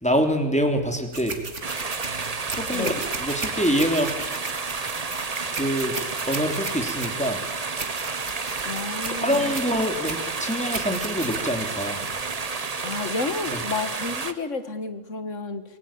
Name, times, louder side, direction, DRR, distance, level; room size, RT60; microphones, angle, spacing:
voice 1, 0.0-1.4 2.5-2.9 3.2-4.1 5.5-5.9 6.3-7.4 8.4-8.6 9.2-12.0 13.5-13.6, equal, 5° left, 4 dB, 3.2 m, -25 dB
sound 1, 1.1-12.2, right 4 dB, 65° right, 2.6 m, -36 dB
sound 2, 1.6-14.3, right 4 dB, 30° right, 1.1 m, -31 dB
voice 2, 2.7-3.0 8.6-9.6 12.8-15.6, left 4 dB, 75° left, 10 dB, 2.1 m, -31 dB
26.0 x 18.0 x 8.7 m, 1.2 s
omnidirectional pair, 1.3 m